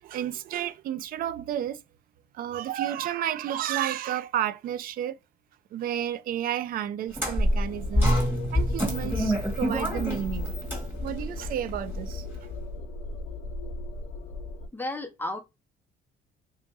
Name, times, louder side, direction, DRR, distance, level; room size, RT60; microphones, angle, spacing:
voice 1, 0.0-1.8 2.3-5.2 5.7-8.1 8.5-10.5 11.0-12.3, right 11 dB, 60° right, 0.4 m, -31 dB
sound 1, 7.1-12.4, equal, 10° right, 1.5 m, -27 dB
sound 2, 7.4-14.7, left 3 dB, 55° left, 0.8 m, -37 dB
voice 2, 14.7-15.4, left 1 dB, 10° left, 0.7 m, -32 dB
2.8 x 2.7 x 3.4 m
cardioid pair, 110°, 17 cm